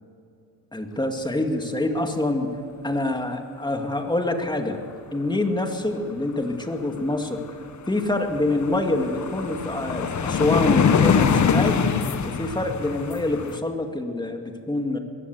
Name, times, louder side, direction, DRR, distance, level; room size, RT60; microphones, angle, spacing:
voice 1, 0.7-2.5 2.8-4.8 5.1-7.4 7.9-11.8 12.2-15.0, left 2 dB, 10° left, 4 dB, 2.4 m, -26 dB
small-train-pass-by, 7.5-7.6 7.9-13.6, left 6 dB, 45° left, 1.4 m, -23 dB
22.0 x 15.0 x 8.0 m, 2.7 s
cardioid pair, 100°, 39 cm